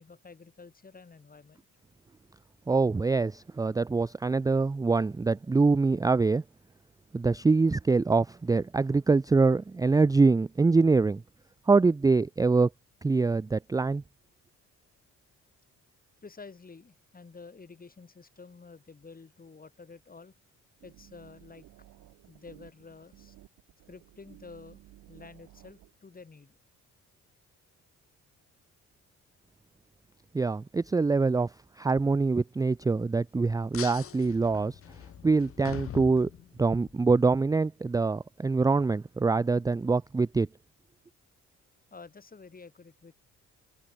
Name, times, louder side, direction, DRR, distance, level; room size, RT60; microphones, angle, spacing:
voice 1, 0.0-1.7 16.2-20.3 20.8-21.7 22.3-23.4 23.9-24.8 25.1-26.6 41.9-43.1, left 4 dB, 30° left, 5.5 m, -50 dB
voice 2, 2.7-6.4 7.1-11.2 11.7-12.7 13.0-14.0 30.3-34.8 35.2-36.3 36.6-40.5, right 4 dB, 10° right, 0.4 m, -24 dB
sound 1, 20.8-25.9, right 15 dB, 85° right, 2.0 m, -55 dB
sound 2, 33.7-36.9, left 10 dB, 45° left, 0.8 m, -42 dB
cardioid pair, 90°, 30 cm